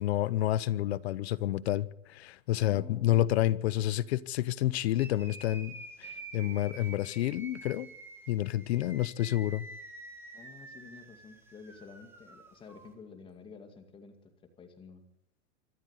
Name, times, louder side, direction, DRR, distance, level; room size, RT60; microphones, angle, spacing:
voice 1, 0.0-5.7 6.0-7.9 8.3-9.6, left 14 dB, 55° left, 0.9 m, -29 dB
voice 2, 2.6-3.3 8.8-9.0 10.3-15.0, left 5 dB, 15° left, 2.2 m, -50 dB
sound 1, 4.9-12.9, right 2 dB, 5° right, 2.5 m, -48 dB
25.5 x 13.0 x 8.2 m
supercardioid pair, 170°, 37 cm